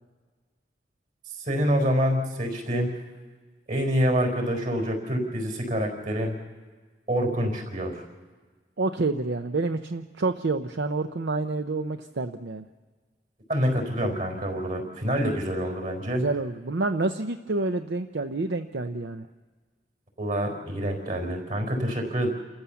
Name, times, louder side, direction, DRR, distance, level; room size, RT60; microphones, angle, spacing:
voice 1, 1.3-2.9 3.7-6.3 7.1-8.0 13.5-16.3 20.2-22.3, equal, 50° right, 3 dB, 4.6 m, -26 dB
voice 2, 8.8-12.7 16.1-19.3, right 3 dB, 70° right, 8 dB, 0.7 m, -28 dB
28.5 x 14.5 x 7.0 m, 1.5 s
head